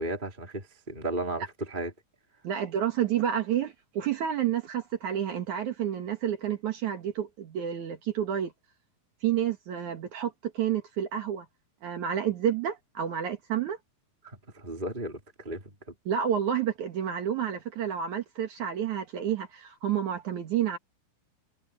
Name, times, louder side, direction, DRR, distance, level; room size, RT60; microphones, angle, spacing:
voice 1, 0.0-1.9 14.2-15.7, right 1 dB, 15° right, 2.8 m, -35 dB
voice 2, 2.4-8.5 9.2-11.5 11.8-13.8 16.1-20.8, right 9 dB, 60° right, 2.7 m, -29 dB
omnidirectional pair, 4.2 m